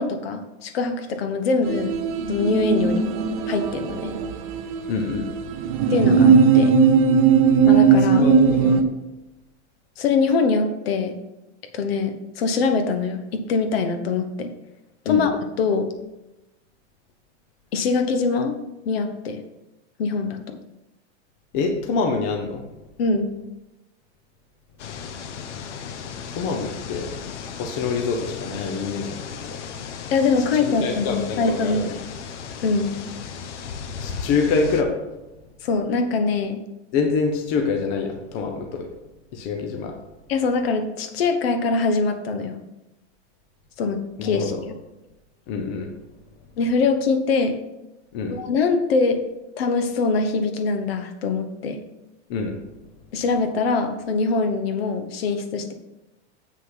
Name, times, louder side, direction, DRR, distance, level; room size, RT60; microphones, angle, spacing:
voice 1, 0.0-2.0 2.3-3.0 3.5-4.2 5.9-6.7 7.6-8.3 10.0-11.2 11.7-14.5 15.0-15.9 17.7-18.5 18.8-19.4 20.0-20.6 23.0-23.3 30.1-32.0 32.6-32.9 35.6-36.6 40.3-42.6 43.8-44.8 46.6-47.6 48.3-49.2 49.6-51.8 53.1-55.7, left 4 dB, 60° left, 8 dB, 1.2 m, -23 dB
sound 1, 1.7-8.8, right 6 dB, 30° right, 0.5 m, -18 dB
voice 2, 4.9-5.3 8.1-8.9 15.1-15.3 21.5-22.6 26.3-27.1 27.6-29.6 30.7-31.8 34.0-34.9 36.9-38.9 39.3-39.9 44.2-44.6 45.5-45.9 48.1-48.4 52.3-52.6, left 4 dB, 25° left, 3 dB, 0.6 m, -25 dB
sound 2, 24.8-34.8, left 6 dB, 85° left, 1.1 m, -35 dB
7.7 x 6.2 x 5.7 m, 0.97 s
supercardioid pair, 175°, 34 cm